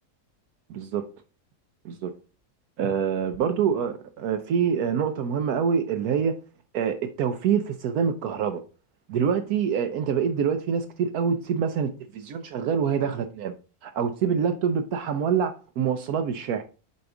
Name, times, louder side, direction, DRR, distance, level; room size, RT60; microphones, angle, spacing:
voice 1, 0.7-1.0 1.8-2.1 2.8-6.3 6.7-8.6 9.1-13.5 13.8-16.6, right 7 dB, 70° right, 1.1 m, -26 dB
6.9 x 4.3 x 3.7 m
omnidirectional pair, 1.7 m